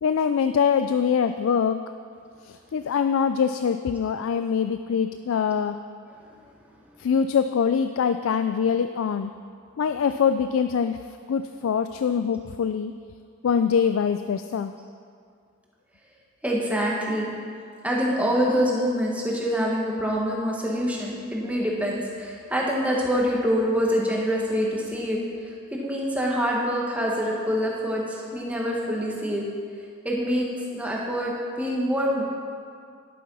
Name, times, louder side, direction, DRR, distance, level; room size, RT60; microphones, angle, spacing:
voice 1, 0.0-1.8 2.4-5.8 7.0-9.3 9.8-11.0 11.3-12.9 13.4-14.7, left 7 dB, 70° left, 9 dB, 0.3 m, -23 dB
voice 2, 16.4-17.3 17.8-25.2 25.4-29.4 30.0-30.5 30.7-32.2, equal, 5° right, -3 dB, 1.6 m, -25 dB
11.0 x 8.6 x 5.5 m, 2.2 s
head